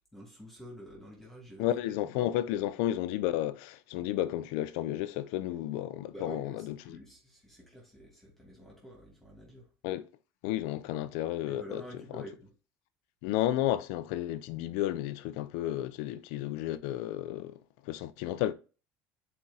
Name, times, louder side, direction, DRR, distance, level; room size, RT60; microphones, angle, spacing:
voice 1, 0.1-2.4 6.1-9.7 11.4-12.5, equal, 5° left, 2.6 m, -49 dB
voice 2, 1.6-7.0 9.8-10.1 10.4-11.8 12.1-12.2 13.2-17.6 17.8-18.5, left 13 dB, 80° left, 0.6 m, -32 dB
10.0 x 4.4 x 2.9 m
cardioid pair, 150°, 7 cm